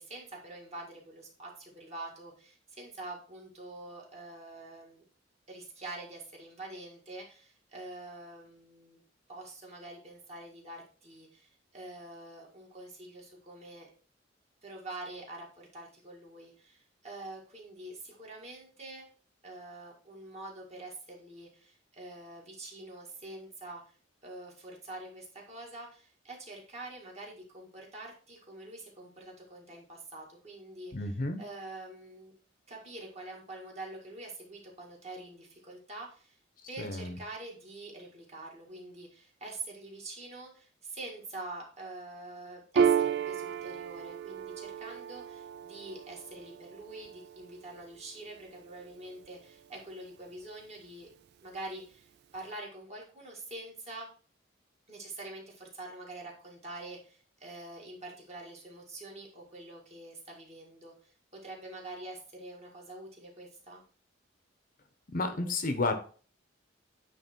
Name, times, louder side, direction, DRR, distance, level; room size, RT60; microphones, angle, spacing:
voice 1, 0.0-5.0 5.5-9.0 9.3-13.9 14.6-19.1 19.4-23.8 24.2-31.1 31.4-32.3 32.7-36.4 36.7-51.1 51.4-54.1 54.9-63.8, right 2 dB, 35° right, -2 dB, 2.0 m, -45 dB
voice 2, 30.9-31.4 36.8-37.2 65.1-65.9, left 2 dB, 45° left, 8 dB, 0.8 m, -31 dB
Piano, 42.8-49.7, right 7 dB, 60° right, 0.3 m, -33 dB
8.9 x 3.2 x 4.5 m, 0.40 s
head